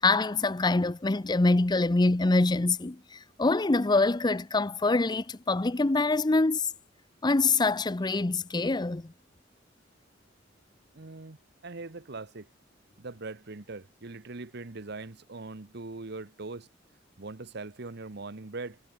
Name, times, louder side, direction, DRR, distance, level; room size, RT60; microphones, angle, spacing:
voice 1, 0.0-6.7 7.2-9.1, left 3 dB, 25° left, 0.6 m, -25 dB
voice 2, 10.9-11.4 11.6-12.5 13.0-16.7 17.2-18.8, right 3 dB, 60° right, 1.1 m, -41 dB
head